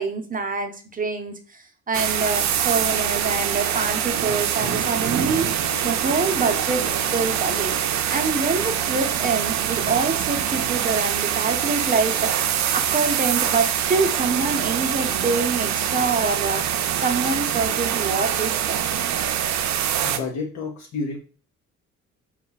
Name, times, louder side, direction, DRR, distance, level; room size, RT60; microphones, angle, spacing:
voice 1, 0.0-7.7 8.1-12.4 12.7-18.9, right 4 dB, 30° right, 5 dB, 0.7 m, -26 dB
sound 1, 1.9-20.2, right 9 dB, 65° right, 0.5 m, -24 dB
sound 2, 2.4-8.0, left 1 dB, 40° left, 1.0 m, -42 dB
voice 2, 20.0-21.2, left 4 dB, 70° left, 0 dB, 0.8 m, -30 dB
4.3 x 2.3 x 4.0 m, 0.38 s
cardioid pair, 90°, 30 cm